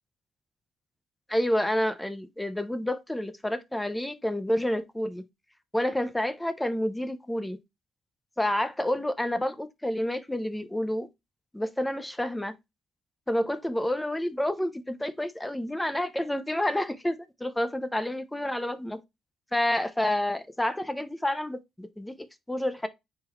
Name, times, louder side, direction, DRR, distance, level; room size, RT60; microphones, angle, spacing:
voice 1, 1.3-5.2 5.7-7.6 8.4-11.1 11.5-12.5 13.3-19.0 19.5-22.9, left 1 dB, 10° left, 0.7 m, -29 dB
4.5 x 3.8 x 3.0 m
cardioid pair, 90°, 0 cm